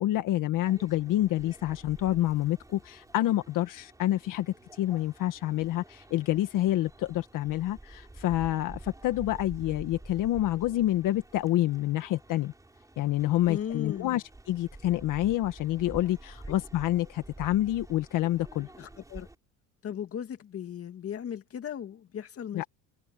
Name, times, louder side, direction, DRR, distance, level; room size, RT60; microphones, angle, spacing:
voice 1, 0.0-12.5 13.0-18.7 22.5-22.6, left 14 dB, 60° left, 1.7 m, -28 dB
sound 1, 0.7-19.3, right 2 dB, 10° right, 6.8 m, -49 dB
voice 2, 13.5-14.2 18.8-19.3 19.8-22.7, left 9 dB, 40° left, 2.4 m, -37 dB
cardioid pair, 125°, 36 cm